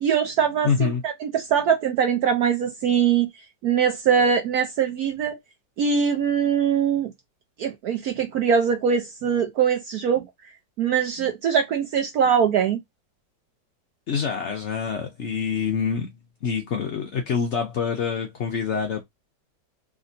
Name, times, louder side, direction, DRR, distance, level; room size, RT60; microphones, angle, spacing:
voice 1, 0.0-3.3 3.6-5.4 5.8-7.1 7.6-10.2 10.8-12.8, right 7 dB, 65° right, 0.9 m, -22 dB
voice 2, 0.6-1.0 14.1-16.1 16.4-19.0, left 6 dB, 80° left, 0.6 m, -26 dB
3.4 x 2.8 x 2.6 m
omnidirectional pair, 2.1 m